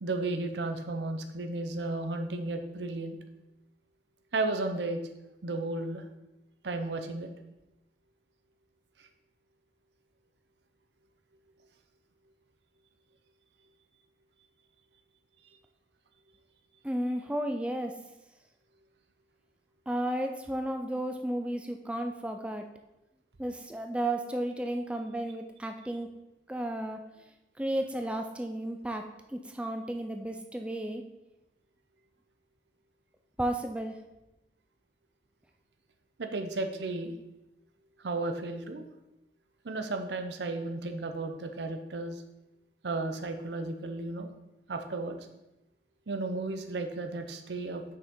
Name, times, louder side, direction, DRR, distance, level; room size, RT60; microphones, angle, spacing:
voice 1, 0.0-3.2 4.3-5.0 5.4-6.0 6.6-7.3 36.2-37.1 38.0-38.9 39.6-42.2 42.8-44.3 44.7-45.3 46.1-47.8, right 2 dB, 80° right, 6 dB, 0.7 m, -34 dB
voice 2, 16.8-17.9 19.9-22.7 23.4-26.1 26.5-27.0 27.6-31.0 33.4-34.0, right 1 dB, 5° right, 4 dB, 0.3 m, -33 dB
6.4 x 5.6 x 3.7 m, 0.97 s
head